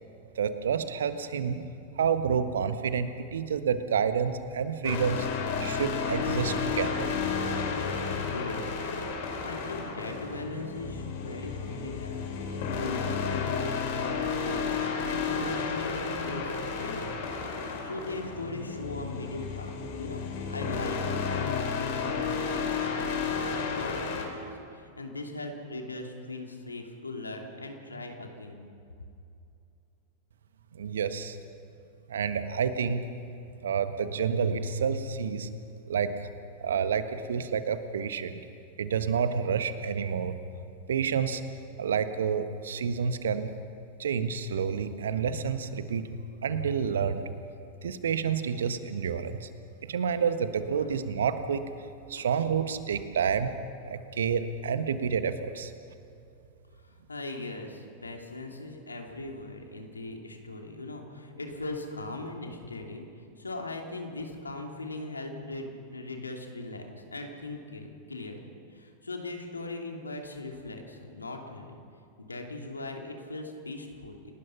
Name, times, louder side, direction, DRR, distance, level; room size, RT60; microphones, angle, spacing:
voice 1, 0.4-1.7 1.9-5.3 5.6-7.1 30.7-31.4 32.1-33.0 33.6-35.5 35.9-36.1 36.6-38.4 38.8-40.3 40.9-41.4 41.8-43.5 44.0-46.1 46.4-47.3 47.8-49.5 49.8-51.6 52.1-53.5 53.8-55.7, right 6 dB, 65° right, 10 dB, 1.4 m, -29 dB
sound 1, 4.8-24.3, left 5 dB, 50° left, 4.1 m, -32 dB
voice 2, 8.1-8.8 9.4-17.2 17.8-28.6 52.2-52.3 57.1-63.1 63.4-68.4 68.7-71.8 72.2-74.3, left 2 dB, 80° left, 2 dB, 2.9 m, -39 dB
28.5 x 19.0 x 5.9 m, 2.6 s
figure-of-eight pair, 90°, 0 cm